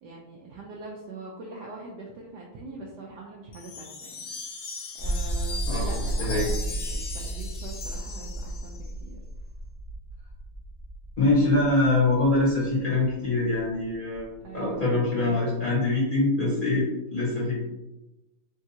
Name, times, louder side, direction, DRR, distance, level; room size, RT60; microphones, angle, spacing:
voice 1, 0.0-4.6 5.0-9.2 14.4-15.4, right 3 dB, 75° right, -2 dB, 0.9 m, -42 dB
Wind chime, 3.5-8.9, left 4 dB, 85° left, 0.7 m, -39 dB
sound 1, 5.0-15.1, right 1 dB, 40° right, 0.4 m, -34 dB
voice 2, 5.7-6.5 11.2-16.9 17.1-17.6, left 2 dB, 35° left, -9 dB, 0.9 m, -24 dB
3.6 x 2.8 x 2.7 m, 0.99 s
omnidirectional pair, 2.2 m